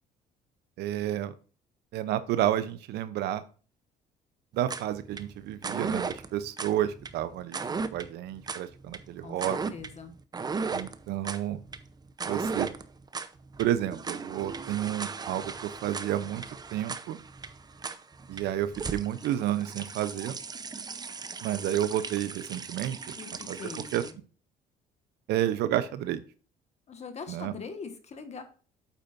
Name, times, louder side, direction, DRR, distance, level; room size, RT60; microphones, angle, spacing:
voice 1, 0.8-1.3 1.9-3.4 4.5-9.7 10.7-11.6 12.2-12.7 13.6-16.4 16.7-17.2 18.3-20.4 21.4-23.0 23.5-23.6 23.9-24.0 25.3-26.2 27.3-27.5, right 12 dB, 75° right, 12 dB, 0.7 m, -30 dB
sound 1, 4.6-24.1, right 4 dB, 25° right, 0.7 m, -37 dB
voice 2, 9.7-10.1 23.2-24.2 26.9-28.4, left 5 dB, 40° left, 8 dB, 1.5 m, -42 dB
8.5 x 8.1 x 2.6 m, 0.38 s
cardioid pair, 110°, 17 cm